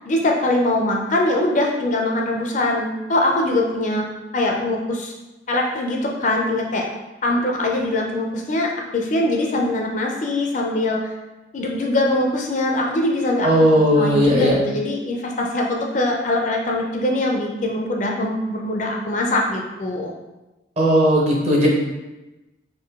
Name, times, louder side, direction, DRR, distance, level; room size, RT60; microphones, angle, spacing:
voice 1, 0.1-4.1 4.3-5.1 5.5-6.9 7.2-11.1 11.5-20.1, left 1 dB, 40° left, 0 dB, 0.4 m, -22 dB
voice 2, 13.4-14.6 20.8-21.7, equal, 35° right, -2 dB, 0.7 m, -16 dB
3.7 x 2.6 x 3.5 m, 1.1 s
head